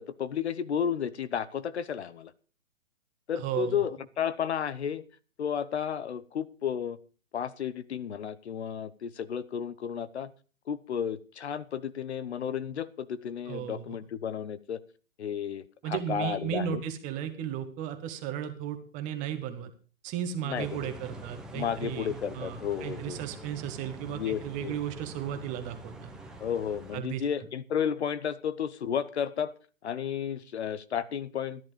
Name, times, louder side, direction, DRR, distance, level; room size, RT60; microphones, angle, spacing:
voice 1, 0.0-2.3 3.3-5.0 5.4-7.0 7.3-10.3 10.7-14.8 15.2-16.8 20.4-20.9 21.5-23.2 24.1-24.8 26.4-29.5 29.8-31.7, left 8 dB, 55° left, 17 dB, 1.0 m, -32 dB
voice 2, 3.4-3.8 13.5-14.0 15.8-19.7 20.0-26.1 26.9-27.2, right 9 dB, 20° right, 7 dB, 1.4 m, -35 dB
sound 1, 20.5-27.0, right 2 dB, ahead, 1.1 m, -45 dB
14.0 x 10.5 x 5.1 m, 0.38 s
hypercardioid pair, 140°, 39 cm